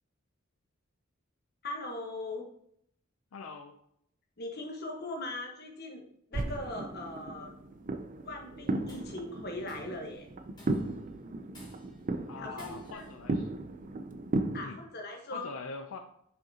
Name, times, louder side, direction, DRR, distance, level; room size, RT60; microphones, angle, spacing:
voice 1, 1.6-2.4 4.4-6.0 6.3-7.5 8.2-10.3 12.4-13.1 14.5-15.5, left 2 dB, 50° left, 2 dB, 1.2 m, -40 dB
voice 2, 3.3-3.8 12.3-13.5 14.6-14.8 15.3-16.0, left 4 dB, 85° left, 6 dB, 0.5 m, -43 dB
sound 1, 6.3-14.7, right 2 dB, 40° right, 0.4 m, -36 dB
Tools, 8.6-9.2 9.7-10.0 10.6-11.0 11.5-12.1 12.6-13.1, left 1 dB, 20° left, 2.5 m, -52 dB
6.2 x 5.7 x 2.8 m, 0.72 s
head